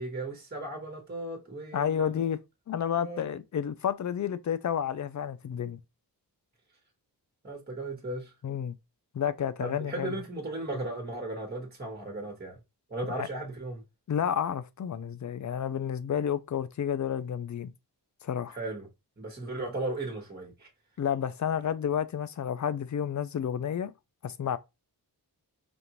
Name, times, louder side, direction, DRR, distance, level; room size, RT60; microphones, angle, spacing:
voice 1, 0.0-2.2 3.0-3.3 7.4-8.3 9.6-12.6 12.9-13.8 18.5-18.9 19.2-20.7, right 2 dB, 25° right, 1.3 m, -36 dB
voice 2, 1.7-2.4 2.7-5.8 8.4-8.7 9.1-10.1 13.1-13.3 14.1-17.7 18.2-18.6 21.0-23.9 24.2-24.6, left 8 dB, 45° left, 0.5 m, -30 dB
5.1 x 2.5 x 3.0 m
cardioid pair, 75°, 42 cm